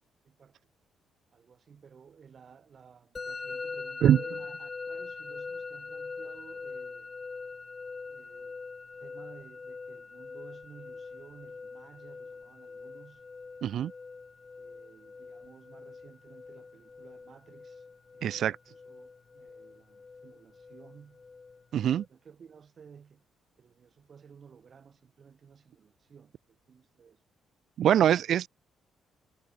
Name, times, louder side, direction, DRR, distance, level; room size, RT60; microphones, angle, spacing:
voice 1, 0.2-0.7 1.3-7.1 8.1-8.6 9.0-13.2 14.6-17.9 18.1-21.2 21.8-23.2 23.6-27.2, right 6 dB, 50° right, 6.0 m, -55 dB
Musical instrument, 3.2-22.1, left 4 dB, 30° left, 3.3 m, -43 dB
voice 2, 13.6-13.9 18.2-18.6 21.7-22.0 27.8-28.5, right 10 dB, 70° right, 0.4 m, -23 dB
cardioid pair, 90°, 0 cm